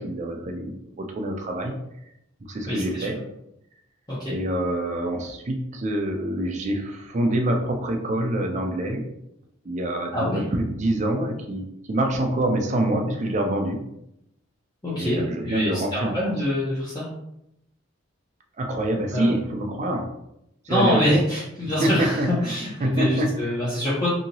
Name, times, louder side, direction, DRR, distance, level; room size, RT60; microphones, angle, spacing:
voice 1, 0.0-1.7 2.5-3.2 4.3-9.0 9.6-13.8 15.0-16.4 18.6-20.1 20.6-21.2 21.6-22.3 22.8-23.6, right 1 dB, 35° right, 3 dB, 0.4 m, -26 dB
voice 2, 2.7-3.1 4.1-4.3 10.1-10.4 14.8-17.1 19.1-19.3 20.7-24.1, left 1 dB, 20° left, -9 dB, 0.7 m, -25 dB
2.9 x 2.7 x 2.6 m, 0.82 s
head